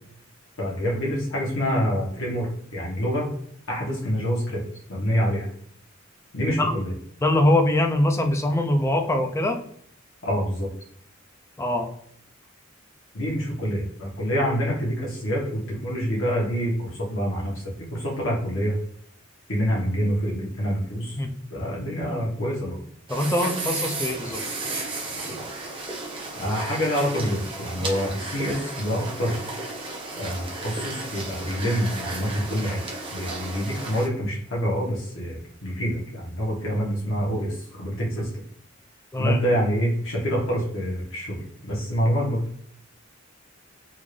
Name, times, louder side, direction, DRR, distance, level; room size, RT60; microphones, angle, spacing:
voice 1, 0.6-3.3 3.7-4.6 4.9-5.5 6.3-6.9 10.2-10.7 13.1-17.5 17.9-18.7 19.5-21.2 21.5-22.8 26.4-29.4 30.2-32.8 33.1-38.3 39.2-42.4, equal, 75° left, -4 dB, 1.2 m, -26 dB
voice 2, 7.2-9.6 11.6-11.9 21.2-21.3 23.1-24.4 39.1-39.4, left 1 dB, 15° left, 4 dB, 0.4 m, -22 dB
sound 1, 23.1-34.1, right 2 dB, 25° right, 0.7 m, -33 dB
3.6 x 2.5 x 3.1 m, 0.65 s
head